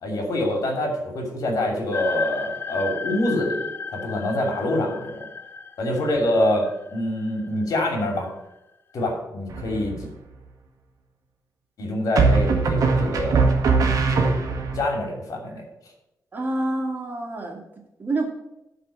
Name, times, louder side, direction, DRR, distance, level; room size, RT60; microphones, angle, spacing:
voice 1, 0.0-3.6 3.9-5.2 5.8-8.3 8.9-9.9 11.8-13.4 14.1-14.3 14.7-15.6, left 1 dB, 70° left, 1 dB, 2.9 m, -25 dB
sound 1, 1.9-8.1, left 5 dB, 35° left, 0.6 m, -34 dB
sound 2, 9.5-10.1 12.1-14.8, right 4 dB, 70° right, 1.6 m, -21 dB
voice 2, 16.3-17.6 18.0-18.3, right 2 dB, 30° right, 2 dB, 1.9 m, -27 dB
11.5 x 4.3 x 7.4 m, 0.89 s
wide cardioid pair, 160°, 6 cm